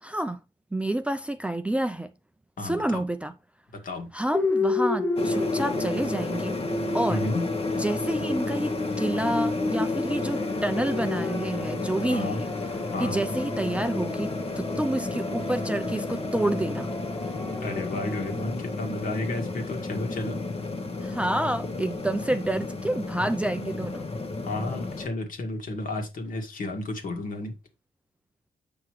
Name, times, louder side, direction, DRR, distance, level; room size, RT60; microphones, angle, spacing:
voice 1, 0.0-0.4 0.7-2.1 2.6-3.3 4.1-6.6 6.9-7.2 7.7-12.5 13.0-16.9 21.0-24.1, right 1 dB, 5° right, 0.5 m, -29 dB
voice 2, 2.6-3.0 3.8-4.1 7.1-7.5 12.1-12.4 12.9-13.2 17.6-20.4 24.5-27.5, left 2 dB, 55° left, 1.9 m, -32 dB
sound 1, 4.3-18.5, left 2 dB, 10° left, 0.9 m, -32 dB
sound 2, 5.2-25.1, left 3 dB, 35° left, 1.2 m, -32 dB
7.9 x 5.6 x 3.2 m
cardioid pair, 105°, 16 cm